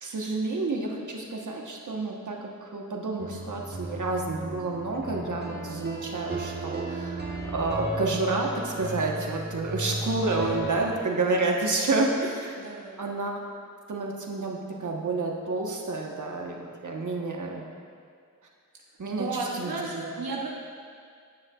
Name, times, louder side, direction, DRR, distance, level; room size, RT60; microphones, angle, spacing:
voice 1, 0.0-7.2 7.5-12.5 13.0-13.4 13.9-17.6 19.0-20.2, right 3 dB, 60° right, 0 dB, 1.2 m, -29 dB
sound 1, 3.2-10.9, right 2 dB, 30° right, 1.3 m, -35 dB
voice 2, 12.6-13.0 19.2-20.5, right 3 dB, 85° right, -2 dB, 1.0 m, -33 dB
17.5 x 6.4 x 2.4 m, 2.1 s
cardioid pair, 60°, 34 cm